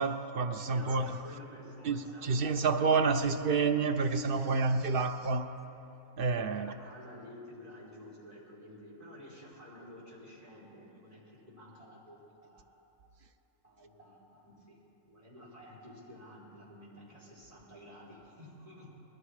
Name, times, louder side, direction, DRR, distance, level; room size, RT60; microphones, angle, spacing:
voice 1, 0.0-1.2 1.8-5.5 6.2-6.7, right 4 dB, 60° right, 0.6 m, -29 dB
voice 2, 0.6-3.5 4.2-4.8 6.4-12.6 13.6-14.8 15.1-19.0, equal, 25° right, 4.0 m, -51 dB
20.0 x 13.5 x 4.9 m
omnidirectional pair, 1.5 m